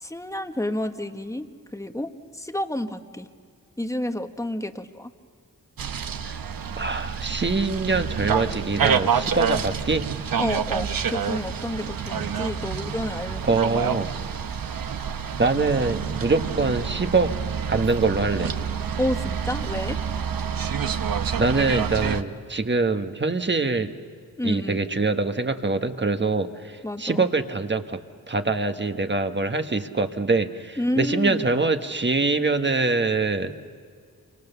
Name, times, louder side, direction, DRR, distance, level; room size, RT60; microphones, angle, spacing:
voice 1, 0.0-2.1 2.3-3.3 3.8-5.1 10.4-13.5 19.0-20.0 24.4-24.8 26.8-27.3 30.8-31.4, left 1 dB, 10° left, 8 dB, 1.3 m, -29 dB
sound 1, 5.8-22.2, right 7 dB, 70° right, 1.0 m, -28 dB
voice 2, 6.8-10.0 13.5-14.1 15.4-17.3 17.7-18.5 21.4-23.9 24.4-28.0 28.3-33.5, right 3 dB, 30° right, 7 dB, 1.4 m, -24 dB
28.5 x 25.0 x 6.9 m, 2.1 s
cardioid pair, 80°, 36 cm